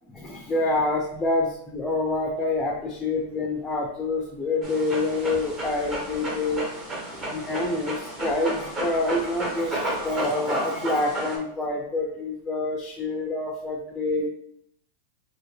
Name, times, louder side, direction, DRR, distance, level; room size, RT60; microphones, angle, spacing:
voice 1, 0.1-6.6 7.1-14.3, left 2 dB, 15° left, 1 dB, 0.4 m, -27 dB
Dog, 4.6-11.4, right 1 dB, 25° right, 0.8 m, -32 dB
3.2 x 2.2 x 3.1 m, 0.72 s
supercardioid pair, 135°, 0 cm